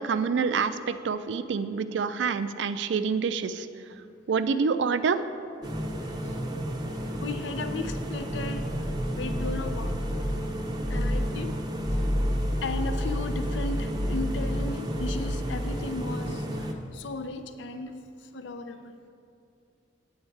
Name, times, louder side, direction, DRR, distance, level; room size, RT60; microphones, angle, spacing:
voice 1, 0.0-3.7 4.3-5.2, right 5 dB, 70° right, 12 dB, 0.4 m, -27 dB
sound 1, 5.6-16.7, equal, 20° right, 0.6 m, -33 dB
voice 2, 7.2-8.7 9.1-10.0 10.9-11.6 12.6-16.6 16.9-17.9 18.3-18.9, left 3 dB, 70° left, 8 dB, 0.4 m, -35 dB
sound 2, 7.9-10.4 10.8-11.3 11.7-16.0, equal, 15° left, 1.1 m, -31 dB
8.7 x 8.0 x 4.6 m, 2.5 s
head